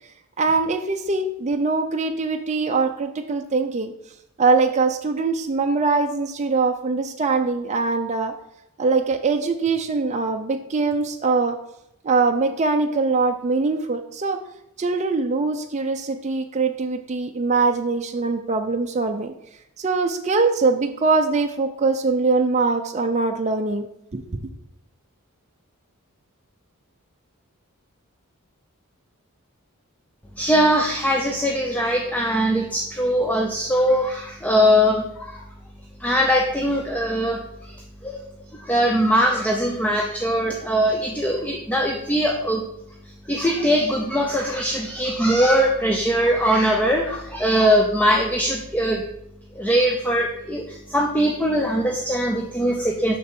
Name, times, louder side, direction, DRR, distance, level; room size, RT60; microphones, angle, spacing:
voice 1, 0.4-3.9 4.4-8.3 8.8-11.6 12.0-14.4 14.8-19.3 19.8-23.8 24.1-24.4, right 4 dB, 30° right, 4 dB, 0.5 m, -22 dB
voice 2, 30.4-35.4 36.0-37.4 37.7-37.8 38.0-38.2 38.5-42.6 43.3-49.0 49.6-53.2, equal, 5° left, 1 dB, 0.6 m, -21 dB
7.1 x 6.1 x 4.4 m, 0.79 s
head